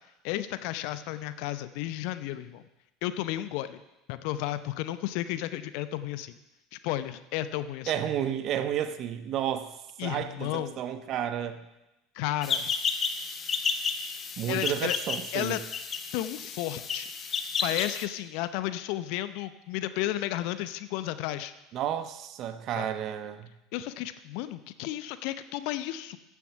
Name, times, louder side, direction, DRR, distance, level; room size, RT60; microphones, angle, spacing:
voice 1, 0.2-2.6 3.0-3.8 4.1-6.3 6.7-7.9 10.0-10.8 12.1-12.7 14.5-14.9 15.3-15.6 16.1-17.1 17.6-21.5 22.8-22.9 23.7-26.2, left 14 dB, 60° left, 13 dB, 0.7 m, -33 dB
voice 2, 7.9-9.7 10.0-11.6 14.4-15.6 21.7-23.5, right 10 dB, 50° right, 11 dB, 0.9 m, -31 dB
sound 1, 12.4-18.1, left 5 dB, 35° left, 1.0 m, -32 dB
14.5 x 7.2 x 5.7 m, 0.95 s
figure-of-eight pair, 70°, 0 cm